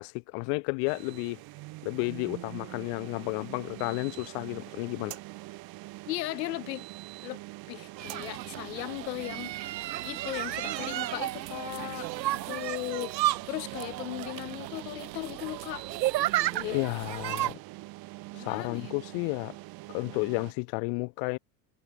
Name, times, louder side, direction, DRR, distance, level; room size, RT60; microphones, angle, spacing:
voice 1, 0.0-1.4 1.8-5.2 16.7-17.6 18.3-19.6 19.9-21.4, left 40 dB or more, 40° left, 0.5 m, -32 dB
sound 1, 0.9-20.5, right 21 dB, 45° right, 4.6 m, -44 dB
voice 2, 6.1-6.9 7.2-7.4 7.7-9.5 10.0-13.1 13.5-15.9 16.5-16.8 18.4-18.9, left 19 dB, 75° left, 1.0 m, -37 dB
sound 2, 8.0-17.5, right 15 dB, 90° right, 1.2 m, -33 dB
supercardioid pair, 130°, 49 cm